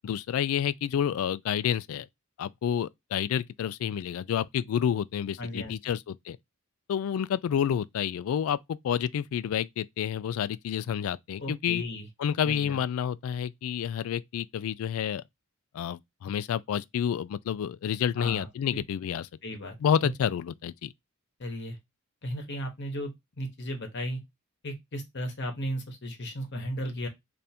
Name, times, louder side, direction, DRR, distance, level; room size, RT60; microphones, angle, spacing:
voice 1, 0.0-2.1 2.4-6.4 6.9-11.8 12.2-15.2 15.7-19.3 19.8-20.9, left 8 dB, 70° left, 0.3 m, -29 dB
voice 2, 5.4-5.8 11.4-12.1 12.4-12.8 18.2-18.8 19.4-19.8 20.0-20.1 21.4-21.8 22.2-24.2 24.6-27.1, equal, 55° left, 1.0 m, -35 dB
3.4 x 2.6 x 4.1 m
head